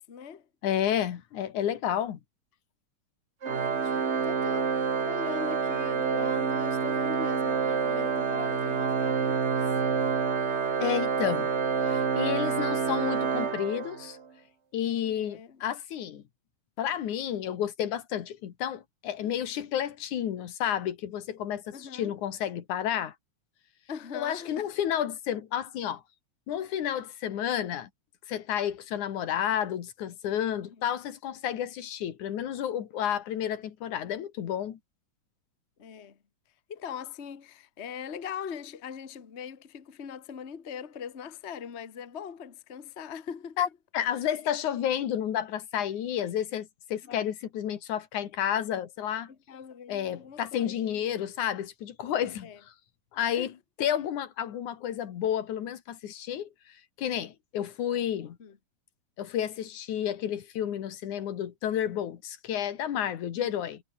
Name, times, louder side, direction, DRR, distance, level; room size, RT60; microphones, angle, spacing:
voice 1, 0.1-0.5 3.4-9.7 15.0-15.6 21.7-22.1 23.9-24.7 30.6-30.9 35.8-36.2 36.7-43.6 47.0-47.2 49.3-51.1 52.4-52.6 53.3-53.5 53.8-53.9 58.4-58.6 63.3-63.6, left 7 dB, 30° left, 1.3 m, -41 dB
voice 2, 0.6-2.2 10.8-11.5 11.8-14.2 14.7-16.2 16.8-23.1 24.1-26.0 26.5-27.9 28.3-34.8 43.6-43.7 43.9-49.3 49.9-52.5 53.1-53.5 53.8-56.5 57.0-58.4 59.2-63.8, left 10 dB, 85° left, 3.2 m, -31 dB
Organ, 3.4-14.2, right 6 dB, 45° right, 0.9 m, -28 dB
omnidirectional pair, 3.4 m